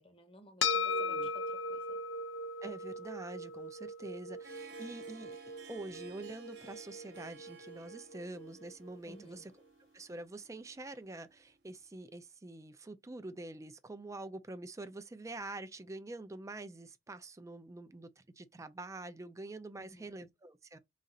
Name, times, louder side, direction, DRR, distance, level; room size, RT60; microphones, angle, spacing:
voice 1, 0.0-2.0 9.0-9.4 19.8-20.2, equal, 30° left, 0.9 m, -56 dB
sound 1, 0.6-9.2, left 3 dB, 75° left, 0.6 m, -39 dB
voice 2, 0.9-1.3 2.6-5.4 5.7-9.5 9.9-20.8, right 2 dB, 15° right, 0.4 m, -46 dB
Harp, 4.1-11.9, right 4 dB, 60° right, 1.0 m, -57 dB
4.1 x 2.5 x 3.8 m
head